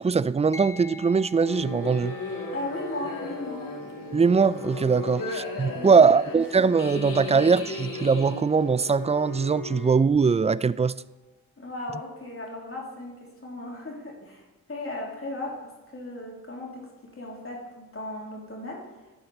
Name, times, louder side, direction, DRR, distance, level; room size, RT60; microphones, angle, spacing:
voice 1, 0.0-2.2 4.1-11.0, right 5 dB, 20° right, 0.3 m, -21 dB
sound 1, 0.5-10.2, left 2 dB, 10° left, 1.0 m, -49 dB
sound 2, 1.4-9.9, left 3 dB, 85° left, 1.9 m, -36 dB
voice 2, 2.5-3.7 5.0-5.3 5.7-6.1 11.6-16.9 17.1-18.9, left 2 dB, 40° left, 3.0 m, -37 dB
11.5 x 7.8 x 4.2 m
cardioid pair, 55°, 33 cm